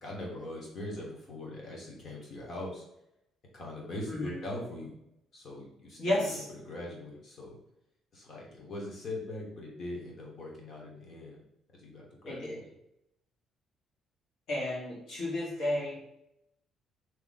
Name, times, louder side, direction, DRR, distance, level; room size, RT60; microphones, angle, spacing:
voice 1, 0.0-2.8 3.5-4.9 5.3-7.6 8.1-11.4 11.7-12.6, left 1 dB, 35° left, -2 dB, 1.2 m, -41 dB
voice 2, 6.0-6.4 12.2-12.6 14.5-16.1, left 1 dB, 60° left, -5 dB, 1.6 m, -32 dB
3.6 x 3.0 x 4.0 m, 0.82 s
cardioid pair, 170°, 0 cm